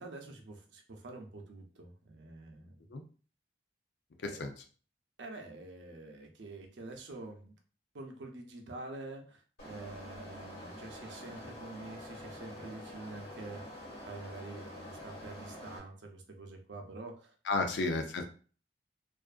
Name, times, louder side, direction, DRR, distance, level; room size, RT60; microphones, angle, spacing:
voice 1, 0.0-2.8 4.3-4.4 5.2-7.5 7.9-17.3, right 2 dB, 85° right, 3 dB, 0.6 m, -47 dB
sound 1, 9.6-15.8, left 1 dB, 60° left, 1.2 m, -47 dB
voice 2, 17.5-18.3, left 3 dB, 80° left, 5 dB, 0.4 m, -32 dB
2.5 x 2.3 x 2.4 m, 0.40 s
head